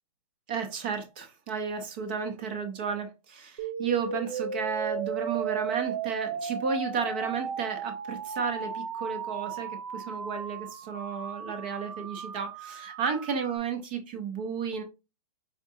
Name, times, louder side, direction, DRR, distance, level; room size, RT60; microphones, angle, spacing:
voice 1, 0.5-14.8, right 6 dB, 15° right, 0.5 m, -33 dB
sound 1, 3.6-13.6, right 6 dB, 50° right, 0.7 m, -35 dB
5.0 x 3.5 x 2.7 m
hypercardioid pair, 175°, 19 cm